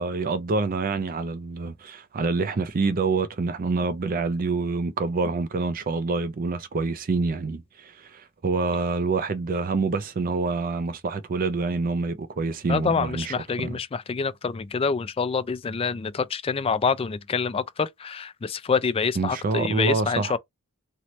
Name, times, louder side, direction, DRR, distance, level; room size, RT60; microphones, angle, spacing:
voice 1, 0.0-13.8 19.2-20.3, right 3 dB, 40° right, 0.4 m, -27 dB
voice 2, 12.7-20.4, left 5 dB, 25° left, 0.3 m, -26 dB
3.1 x 2.8 x 3.0 m
head